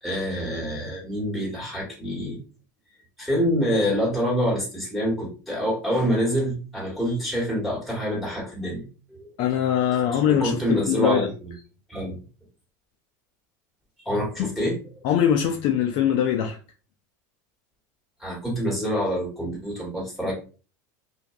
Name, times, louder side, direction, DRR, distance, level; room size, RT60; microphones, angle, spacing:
voice 1, 0.0-2.4 3.2-8.8 9.1-9.3 10.3-11.5 11.9-12.2 14.0-14.8 18.2-20.3, equal, ahead, 1.4 m, -26 dB
voice 2, 9.4-11.3 14.4-14.5 15.0-16.6, left 9 dB, 55° left, 0.4 m, -22 dB
2.5 x 2.3 x 2.3 m
supercardioid pair, 125°, 10 cm